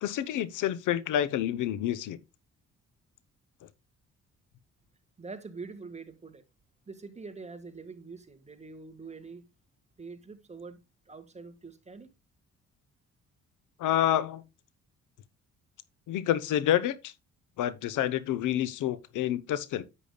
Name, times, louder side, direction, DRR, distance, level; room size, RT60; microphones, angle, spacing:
voice 1, 0.0-2.2 13.8-14.4 16.1-17.1 17.6-19.8, left 11 dB, 85° left, 0.9 m, -28 dB
voice 2, 5.2-6.4 6.9-9.4 10.0-10.8 11.1-12.1, right 4 dB, 20° right, 1.7 m, -44 dB
11.0 x 8.3 x 2.3 m
cardioid pair, 90°, 30 cm